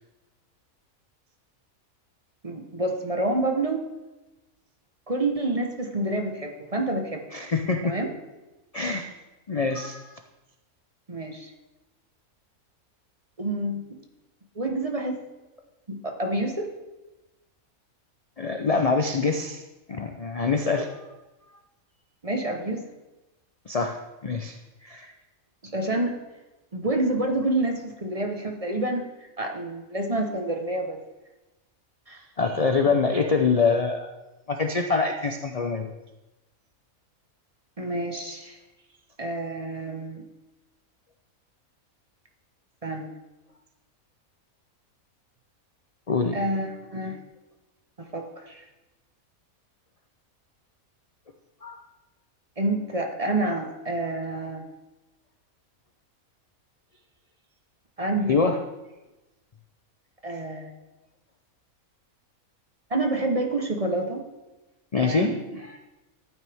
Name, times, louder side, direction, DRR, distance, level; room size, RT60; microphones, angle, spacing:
voice 1, 2.4-3.8 5.1-7.2 7.8-8.1 11.1-11.5 13.4-14.0 14.5-15.2 15.9-16.7 22.2-22.9 25.6-26.2 26.7-29.1 29.4-31.0 32.1-32.3 32.8-32.9 37.8-38.6 39.2-40.2 42.8-43.1 46.3-47.2 48.0-48.7 52.6-54.6 58.0-58.4 60.2-60.7 62.9-64.2 65.0-65.4, right 2 dB, 25° right, 3 dB, 1.1 m, -28 dB
voice 2, 7.3-7.9 8.7-9.1 9.5-10.1 18.4-19.6 19.9-21.0 23.7-25.1 32.4-34.1 34.5-35.9 46.1-46.4 51.6-51.8 58.3-58.6 64.9-65.3, left 4 dB, 45° left, 5 dB, 0.4 m, -25 dB
14.0 x 9.0 x 3.5 m, 1.1 s
omnidirectional pair, 1.5 m